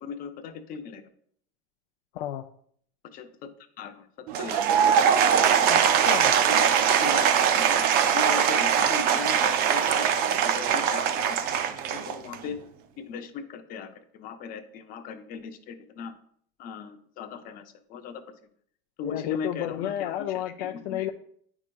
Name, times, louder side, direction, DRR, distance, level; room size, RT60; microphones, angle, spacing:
voice 1, 0.0-1.0 3.1-3.5 3.8-4.6 6.5-6.7 7.0-7.3 7.5-11.4 11.9-12.6 13.0-16.1 16.6-17.6 17.9-18.2 19.0-21.1, left 6 dB, 30° left, 8 dB, 0.5 m, -38 dB
Applause / Crowd, 4.3-12.5, right 8 dB, 30° right, 0.4 m, -22 dB
voice 2, 5.7-6.3 19.0-21.1, left 12 dB, 75° left, 5 dB, 0.5 m, -32 dB
9.8 x 4.8 x 2.3 m, 0.64 s
supercardioid pair, 160°, 30 cm